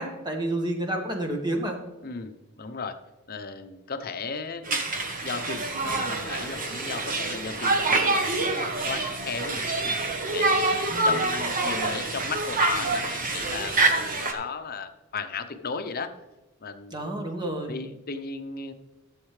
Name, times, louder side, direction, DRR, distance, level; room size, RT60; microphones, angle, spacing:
voice 1, 0.0-1.8 10.9-11.2 16.9-17.7, right 1 dB, 20° right, 2 dB, 1.4 m, -30 dB
voice 2, 2.0-3.0 3.3-4.8 5.2-16.1 16.6-17.1 17.7-18.7, left 4 dB, 45° left, 9 dB, 0.7 m, -35 dB
Conversation, 4.7-14.3, right 2 dB, 40° right, 1.1 m, -26 dB
sound 1, 5.9-7.7 8.0-9.5 9.9-10.9 11.3-12.5 12.8-13.5, right 1 dB, ahead, 1.9 m, -45 dB
12.5 x 7.3 x 3.3 m, 1.1 s
head